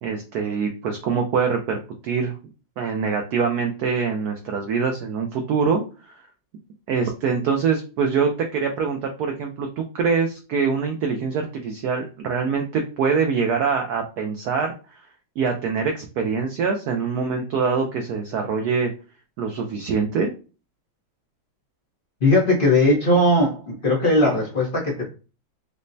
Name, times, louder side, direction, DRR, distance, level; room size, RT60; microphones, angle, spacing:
voice 1, 0.0-2.4 2.8-6.1 6.9-14.7 15.4-18.9 19.4-20.3, right 5 dB, 80° right, 3 dB, 0.8 m, -24 dB
voice 2, 22.2-25.0, left 1 dB, 45° left, -4 dB, 0.7 m, -19 dB
5.1 x 2.1 x 2.6 m, 0.34 s
omnidirectional pair, 2.2 m